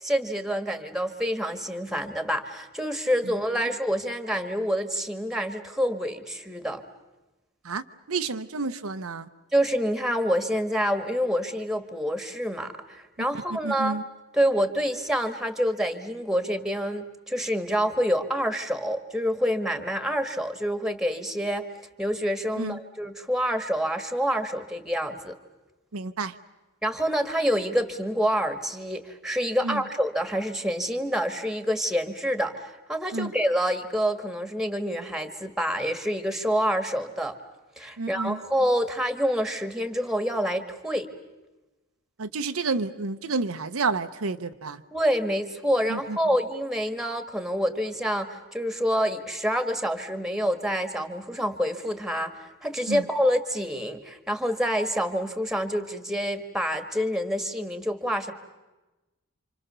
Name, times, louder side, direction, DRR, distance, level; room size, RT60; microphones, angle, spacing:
voice 1, 0.0-6.8 9.5-13.9 14.3-21.7 22.0-25.4 26.8-37.4 37.8-41.1 44.9-58.3, equal, ahead, 9 dB, 1.7 m, -27 dB
voice 2, 7.6-9.3 13.3-14.0 22.6-22.8 25.9-26.4 29.6-29.8 33.1-33.3 38.0-38.4 42.2-44.8 45.9-46.2 52.9-53.0, right 4 dB, 75° right, 8 dB, 0.9 m, -30 dB
29.0 x 26.5 x 6.9 m, 1.1 s
head